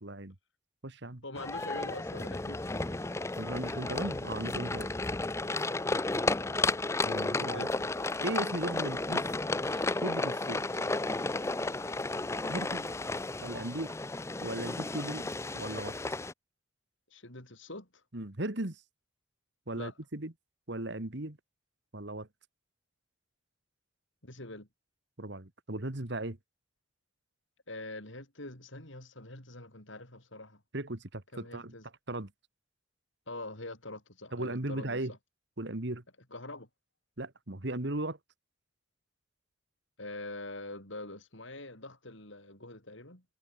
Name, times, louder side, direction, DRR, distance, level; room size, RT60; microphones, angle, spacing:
voice 1, 0.0-0.4 0.8-1.2 3.4-4.9 7.0-7.7 8.2-9.2 9.6-10.6 12.5-12.8 13.4-13.9 14.4-15.3 15.5-15.9 18.1-18.8 19.7-20.3 20.7-21.4 21.9-22.3 25.2-26.4 30.7-31.7 32.1-32.3 34.3-35.1 35.6-36.0 37.2-38.2, right 1 dB, 55° right, 1.9 m, -37 dB
voice 2, 1.2-3.0 7.5-7.8 17.1-18.0 19.7-19.9 24.2-24.7 27.7-30.6 31.3-31.8 33.3-35.0 36.3-36.7 40.0-43.2, left 2 dB, 65° left, 6.6 m, -44 dB
sound 1, 1.4-16.3, left 2 dB, 15° left, 0.5 m, -33 dB
head